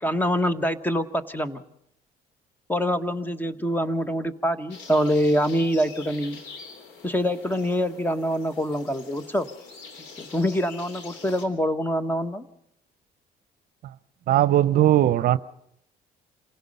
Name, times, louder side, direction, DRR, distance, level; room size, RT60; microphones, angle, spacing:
voice 1, 0.0-1.6 2.7-6.4 7.0-9.5 10.2-12.4, equal, 10° left, 1.3 m, -25 dB
sound 1, 4.7-11.4, left 5 dB, 90° left, 3.5 m, -44 dB
voice 2, 14.3-15.4, right 13 dB, 60° right, 0.7 m, -19 dB
27.5 x 17.5 x 5.5 m
cardioid pair, 110°, 17 cm